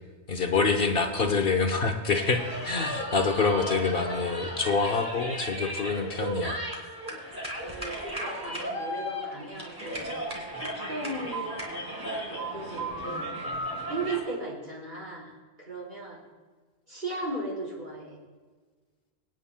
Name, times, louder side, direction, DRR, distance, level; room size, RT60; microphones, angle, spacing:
voice 1, 0.3-6.6, left 4 dB, 60° left, 5 dB, 1.1 m, -26 dB
voice 2, 0.9-1.3 7.6-10.1 10.6-11.6 12.3-13.2 13.9-15.3 15.6-16.2 16.9-18.2, right 2 dB, 45° right, -5 dB, 4.4 m, -36 dB
sound 1, 2.2-14.2, right 1 dB, 20° right, 2.4 m, -35 dB
24.5 x 9.1 x 2.2 m, 1.4 s
omnidirectional pair, 1.1 m